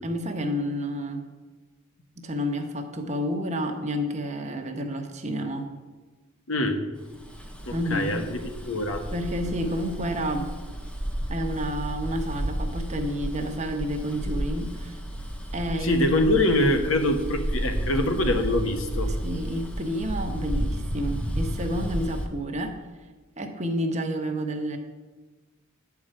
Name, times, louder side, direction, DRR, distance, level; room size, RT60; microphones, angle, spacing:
voice 1, 0.0-1.2 2.2-5.7 7.7-8.2 9.1-10.5 11.3-15.0 15.5-16.0 19.1-22.8 23.4-24.8, equal, 35° right, 4 dB, 1.0 m, -30 dB
voice 2, 6.5-6.8 7.7-9.0 15.8-19.1, left 1 dB, 70° left, 6 dB, 1.1 m, -24 dB
Bus, 7.1-22.3, equal, 5° left, 0.8 m, -32 dB
10.5 x 4.8 x 7.6 m, 1.3 s
head